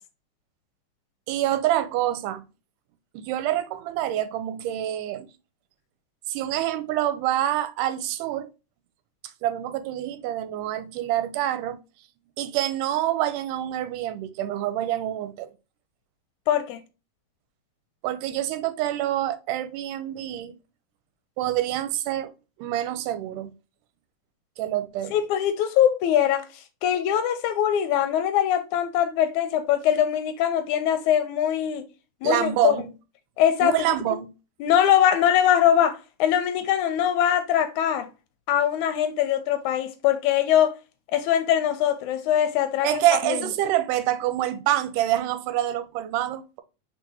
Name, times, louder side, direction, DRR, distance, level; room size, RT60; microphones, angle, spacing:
voice 1, 1.3-2.5 3.1-5.3 6.3-8.5 9.4-11.8 12.4-15.5 18.0-20.6 21.4-22.3 22.6-23.5 24.6-25.2 32.2-32.9 33.6-34.3 42.8-46.6, right 13 dB, 85° right, 2.2 m, -26 dB
voice 2, 16.5-16.8 25.1-26.4 26.8-31.8 32.2-32.8 33.4-33.9 34.6-38.1 38.5-40.8 41.1-43.4, left 10 dB, 80° left, 1.9 m, -22 dB
4.5 x 4.3 x 2.7 m
omnidirectional pair, 3.6 m